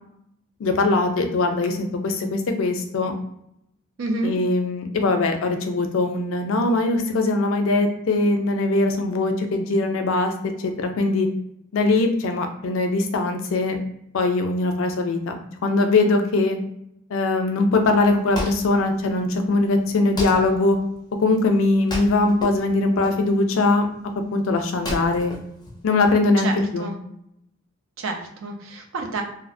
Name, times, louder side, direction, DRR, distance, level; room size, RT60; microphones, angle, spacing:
voice 1, 0.6-3.1 4.2-10.3 10.6-11.3 11.7-13.8 14.1-16.6 17.1-20.8 21.2-23.9 24.3-25.3 25.8-26.9, left 2 dB, 85° left, 6 dB, 0.4 m, -21 dB
voice 2, 4.0-4.3 26.4-26.5 26.8-26.9 28.0-29.2, right 3 dB, 85° right, 3 dB, 0.5 m, -28 dB
Wood, 17.9-26.3, left 1 dB, 20° left, 0.4 m, -36 dB
2.5 x 2.0 x 2.5 m, 0.77 s
head